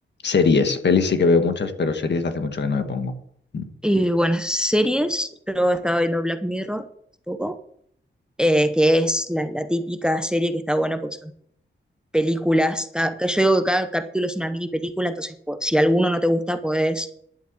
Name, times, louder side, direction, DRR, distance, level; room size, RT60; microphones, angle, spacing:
voice 1, 0.2-3.1 3.5-3.6, left 4 dB, 60° left, 7 dB, 1.4 m, -21 dB
voice 2, 3.8-6.8 7.3-7.6 8.4-11.3 12.1-17.1, equal, 5° right, 9 dB, 0.7 m, -22 dB
11.0 x 7.7 x 7.5 m, 0.67 s
wide cardioid pair, 120°, 20 cm